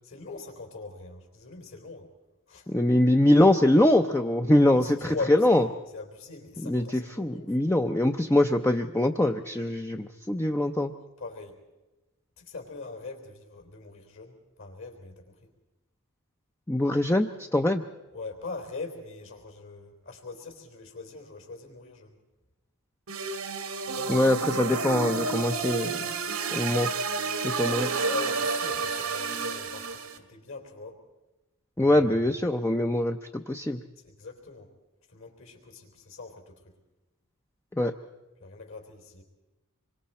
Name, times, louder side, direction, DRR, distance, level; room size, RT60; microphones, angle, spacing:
voice 1, 0.0-2.1 2.5-2.8 4.6-7.6 11.2-11.6 12.4-15.2 18.1-22.2 23.9-24.2 28.0-31.0 31.8-32.1 34.0-34.7 35.1-36.5 38.4-39.2, left 3 dB, 65° left, 4 dB, 3.7 m, -41 dB
voice 2, 2.7-5.6 6.6-10.9 16.7-17.8 24.1-26.0 26.5-26.9 27.4-27.9 31.8-33.8 37.8-37.9, left 1 dB, 10° left, 4 dB, 0.6 m, -23 dB
sound 1, 23.1-30.2, right 4 dB, 90° right, 1.8 m, -30 dB
26.0 x 23.5 x 4.3 m, 1.1 s
head